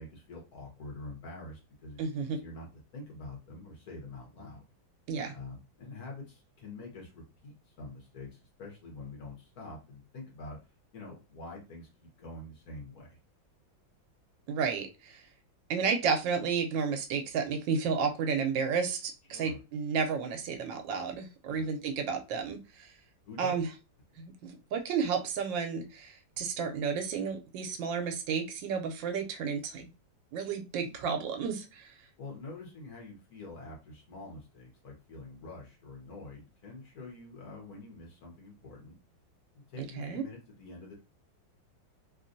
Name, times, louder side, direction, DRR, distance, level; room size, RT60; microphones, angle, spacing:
voice 1, 0.0-2.7 2.9-4.6 5.3-10.6 10.9-13.2 19.3-19.6 21.5-21.7 23.2-23.6 32.2-38.9 39.5-40.9, left 2 dB, 55° left, 0 dB, 1.3 m, -46 dB
voice 2, 2.0-2.4 5.1-5.3 14.5-15.2 15.7-22.9 23.4-23.7 24.2-29.8 30.3-31.9 39.8-40.2, right 6 dB, 75° right, 5 dB, 1.2 m, -32 dB
3.2 x 2.5 x 2.5 m, 0.30 s
omnidirectional pair, 2.1 m